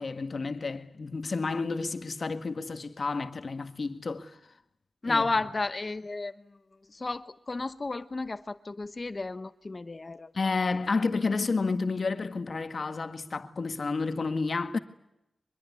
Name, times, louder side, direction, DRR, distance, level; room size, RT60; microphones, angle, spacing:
voice 1, 0.0-4.4 5.0-5.2 10.3-14.8, left 4 dB, 50° left, 1.8 m, -30 dB
voice 2, 5.0-6.3 6.9-10.5, left 3 dB, 35° left, 1.0 m, -32 dB
24.0 x 22.5 x 9.7 m
wide cardioid pair, 105°, 0 cm